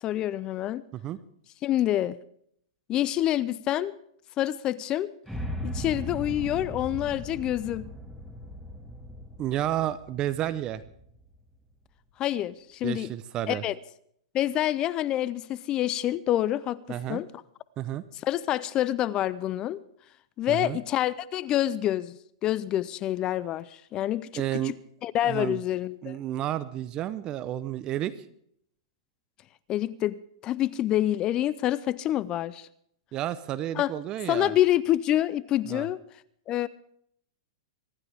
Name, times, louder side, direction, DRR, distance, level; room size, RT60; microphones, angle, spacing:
voice 1, 0.0-0.8 1.6-2.2 2.9-3.9 4.4-5.1 5.6-7.9 12.2-13.1 13.5-13.7 14.3-17.3 18.2-19.8 20.4-24.7 25.0-26.2 29.7-32.7 33.8-33.9 34.3-36.0 36.5-36.7, left 13 dB, 25° left, 0.5 m, -27 dB
sound 1, 5.3-11.4, equal, 5° right, 1.9 m, -38 dB
voice 2, 9.4-10.8 12.8-13.6 16.9-17.2 17.8-18.0 20.5-20.8 24.3-24.7 25.2-25.6 26.0-28.3 33.1-34.5 35.7-35.9, right 12 dB, 25° right, 0.7 m, -31 dB
24.5 x 12.5 x 3.5 m
hypercardioid pair, 150°, 3 cm